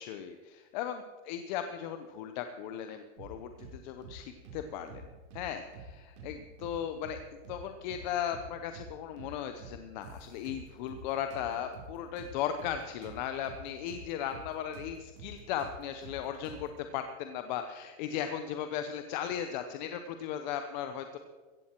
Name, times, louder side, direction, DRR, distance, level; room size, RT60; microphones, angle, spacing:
voice 1, 0.0-5.0 5.3-7.2 7.5-21.2, left 9 dB, 35° left, 8 dB, 0.7 m, -37 dB
sound 1, 3.2-3.8 4.0-4.2 4.4-5.5 5.7-5.9 6.2-7.2 7.4-7.6 7.9-8.9 9.2-9.3 9.6-11.0 11.3-14.0 14.3-14.5 14.7-16.8, right 4 dB, 60° right, 4.0 m, -48 dB
15.5 x 15.0 x 4.4 m, 1.4 s
supercardioid pair, 165°, 40 cm